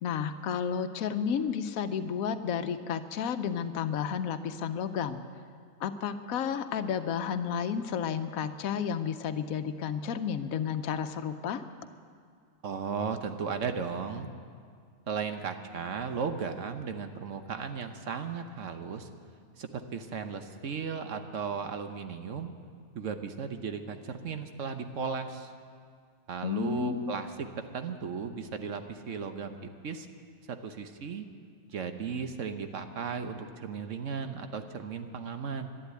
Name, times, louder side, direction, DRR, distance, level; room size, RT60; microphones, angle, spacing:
voice 1, 0.0-5.2 5.8-11.6 26.4-27.1, left 7 dB, 85° left, 10 dB, 1.1 m, -32 dB
voice 2, 12.6-14.3 15.1-19.1 19.6-22.5 22.9-25.5 26.3-30.1 30.5-31.3 31.7-35.7, right 5 dB, 65° right, 7 dB, 1.2 m, -36 dB
12.5 x 11.5 x 9.2 m, 2.1 s
omnidirectional pair, 1.4 m